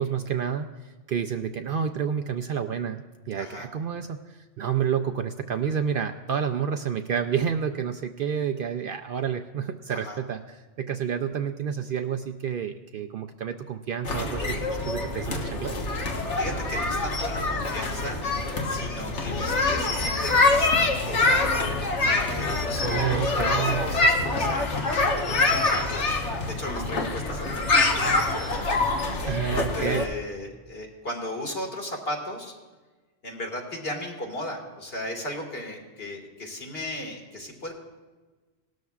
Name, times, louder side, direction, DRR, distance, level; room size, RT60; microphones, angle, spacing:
voice 1, 0.0-15.8 22.8-23.8 29.3-30.1, right 8 dB, 60° right, 6 dB, 0.6 m, -29 dB
voice 2, 3.4-3.7 9.9-10.2 16.1-24.9 25.3-26.2 26.5-32.5 33.2-37.7, left 1 dB, 55° left, 1 dB, 2.1 m, -36 dB
sound 1, 14.0-30.0, left 2 dB, 75° left, 1.5 m, -25 dB
18.5 x 12.5 x 2.4 m, 1.3 s
omnidirectional pair, 1.2 m